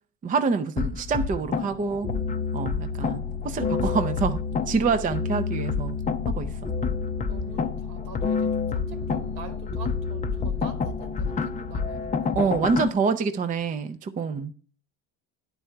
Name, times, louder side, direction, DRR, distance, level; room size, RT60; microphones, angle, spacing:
voice 1, 0.2-2.1 2.5-4.4 4.7-6.0 6.3-6.7 12.4-14.5, right 5 dB, 20° right, 0.6 m, -26 dB
sound 1, 0.8-12.9, left 5 dB, 20° left, 0.6 m, -28 dB
voice 2, 7.3-12.4, right 6 dB, 80° right, 2.3 m, -45 dB
9.8 x 4.6 x 6.5 m
cardioid pair, 125°, 37 cm